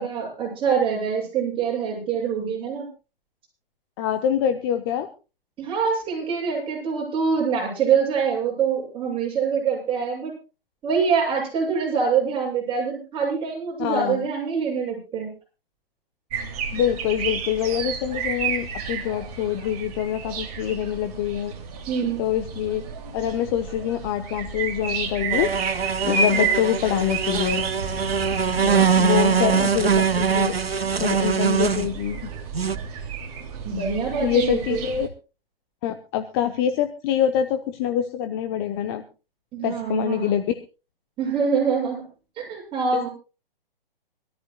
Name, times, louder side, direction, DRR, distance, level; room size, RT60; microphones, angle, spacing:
voice 1, 0.0-2.9 5.6-10.3 10.8-15.3 21.9-22.2 26.3-26.5 28.5-29.7 33.6-34.8 39.5-40.3 41.2-42.0 42.4-43.1, right 6 dB, 20° right, -3 dB, 7.3 m, -25 dB
voice 2, 4.0-5.1 13.8-14.2 16.7-21.5 22.2-22.8 23.1-25.5 26.0-27.6 29.0-30.5 31.0-32.2 34.2-35.1 35.8-39.0 39.6-40.6 42.9-43.1, left 10 dB, 25° left, 8 dB, 0.8 m, -25 dB
sound 1, 16.3-35.1, right 5 dB, 40° right, 2.7 m, -31 dB
sound 2, 25.3-31.9 32.5-32.8, right 6 dB, 85° right, 0.9 m, -22 dB
25.0 x 13.5 x 2.3 m, 0.32 s
figure-of-eight pair, 130°, 29 cm